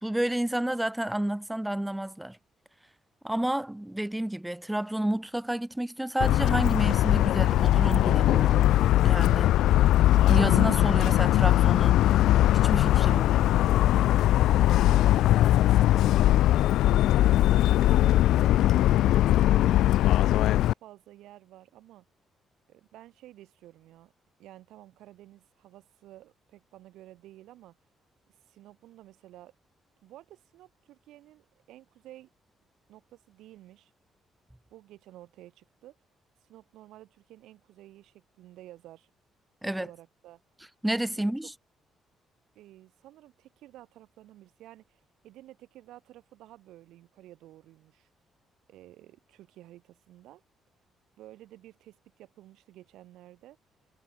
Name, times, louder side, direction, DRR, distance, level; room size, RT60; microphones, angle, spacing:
voice 1, 0.0-2.4 3.2-8.7 9.0-9.5 10.2-12.0 12.5-13.2 39.6-39.9 40.8-41.5, right 1 dB, 5° right, 3.0 m, -30 dB
Motor vehicle (road) / Siren, 6.2-20.7, left 14 dB, 85° left, 0.7 m, -21 dB
voice 2, 13.1-16.1 16.9-18.7 19.2-22.0 22.7-24.1 24.4-27.8 28.5-29.5 30.0-32.3 32.9-33.9 34.7-36.0 36.4-39.1 39.6-40.4 41.1-41.3 42.6-48.1 48.7-50.4 51.2-53.6, right 15 dB, 85° right, 5.7 m, -52 dB
cardioid pair, 90°, 0 cm